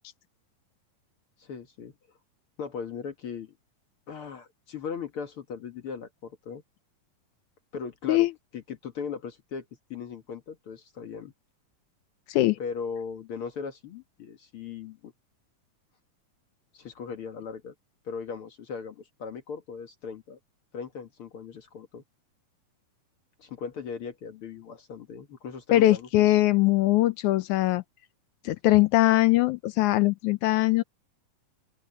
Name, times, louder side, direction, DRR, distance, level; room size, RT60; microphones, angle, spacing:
voice 1, 1.4-1.9 2.6-3.6 4.1-6.6 7.7-8.3 8.5-9.6 9.9-11.3 12.6-15.1 16.7-17.7 18.0-20.4 20.7-22.0 23.4-26.4, left 6 dB, 55° left, 1.7 m, -38 dB
voice 2, 25.7-27.8 28.5-30.8, left 16 dB, 80° left, 1.8 m, -21 dB
open air
omnidirectional pair, 4.0 m